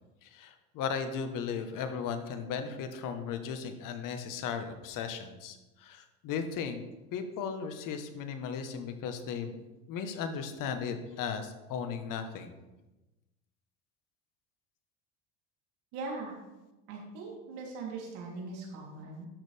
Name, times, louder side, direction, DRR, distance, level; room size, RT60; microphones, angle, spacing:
voice 1, 0.2-6.8 7.1-12.5, left 6 dB, 60° left, 7 dB, 1.4 m, -36 dB
voice 2, 15.9-16.3 16.9-19.3, right 3 dB, 75° right, -3 dB, 3.4 m, -40 dB
12.0 x 6.6 x 3.5 m, 1.1 s
supercardioid pair, 95°, 37 cm